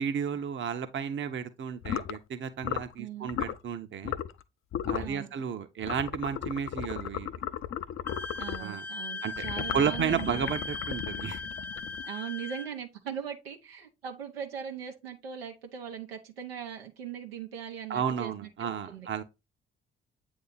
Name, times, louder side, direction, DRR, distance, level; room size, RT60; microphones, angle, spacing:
voice 1, 0.0-4.1 4.9-7.3 8.6-8.8 9.2-9.3 9.7-11.4 17.9-19.2, right 7 dB, 40° right, 0.9 m, -32 dB
sound 1, 1.8-2.2 2.6-2.9 3.3-3.6 4.0-4.4 4.7-5.1 5.8-8.7 9.4-12.2, left 10 dB, 45° left, 0.6 m, -35 dB
voice 2, 3.0-3.3 5.0-5.3 8.4-10.4 12.0-19.1, right 8 dB, 85° right, 0.9 m, -40 dB
Wind instrument woodwind instrument, 8.1-12.7, left 3 dB, 5° left, 0.7 m, -38 dB
8.4 x 2.8 x 4.1 m
figure-of-eight pair, 45°, 29 cm